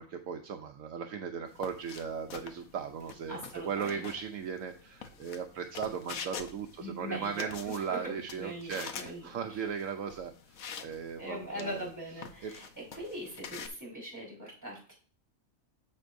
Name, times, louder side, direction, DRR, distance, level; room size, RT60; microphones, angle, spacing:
voice 1, 0.0-3.4 3.6-11.8 12.4-12.5, right 7 dB, 70° right, 5 dB, 1.0 m, -37 dB
sound 1, 1.5-13.7, left 7 dB, 75° left, 1.2 m, -47 dB
voice 2, 3.3-4.0 6.8-7.5 7.9-9.7 11.2-14.9, equal, 10° right, -4 dB, 4.8 m, -41 dB
9.8 x 7.3 x 2.6 m, 0.41 s
omnidirectional pair, 1.5 m